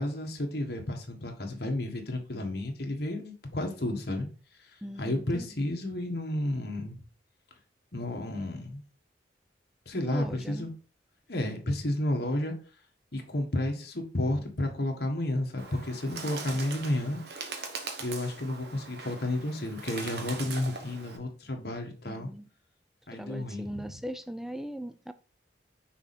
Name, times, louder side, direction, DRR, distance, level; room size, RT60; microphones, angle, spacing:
voice 1, 0.0-4.3 5.0-7.0 7.9-8.8 9.9-10.7 11.3-12.6 13.1-17.2 18.0-22.3 23.1-23.9, left 1 dB, 60° left, 1.4 m, -32 dB
voice 2, 4.8-5.7 10.0-10.7 22.0-22.5 23.1-25.1, equal, ahead, 0.4 m, -39 dB
Bird, 15.6-21.2, right 4 dB, 60° right, 1.1 m, -41 dB
5.9 x 4.2 x 4.2 m
head